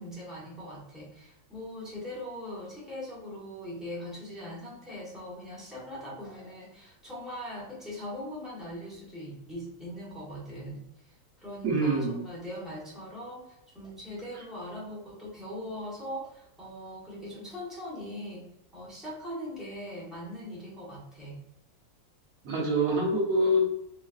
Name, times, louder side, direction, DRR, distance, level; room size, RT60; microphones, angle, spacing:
voice 1, 0.0-18.5 18.7-21.4, equal, ahead, -7 dB, 0.6 m, -41 dB
voice 2, 11.6-12.2 22.4-23.6, right 1 dB, 55° right, -2 dB, 1.0 m, -25 dB
3.0 x 2.6 x 2.4 m, 0.81 s
omnidirectional pair, 2.1 m